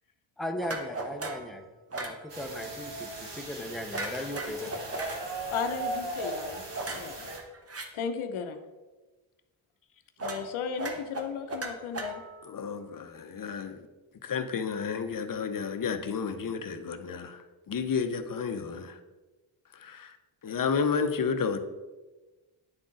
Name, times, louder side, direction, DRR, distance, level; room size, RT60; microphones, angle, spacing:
voice 1, 0.4-1.7 1.9-5.5, left 1 dB, ahead, 0.8 m, -38 dB
sound 1, 0.6-1.5 1.9-2.2 3.9-5.2 6.7-7.9 10.2-10.5 10.8-12.5, right 2 dB, 30° right, 1.0 m, -36 dB
sound 2, 2.3-7.4, right 2 dB, 55° right, 1.8 m, -37 dB
voice 2, 5.5-6.6 6.9-7.2 7.9-8.6 10.2-12.2, left 6 dB, 80° left, 0.7 m, -35 dB
voice 3, 12.4-13.9 14.2-19.0 19.7-20.2 20.4-21.6, left 6 dB, 45° left, 0.7 m, -31 dB
9.7 x 3.8 x 3.8 m
cardioid pair, 60°, 48 cm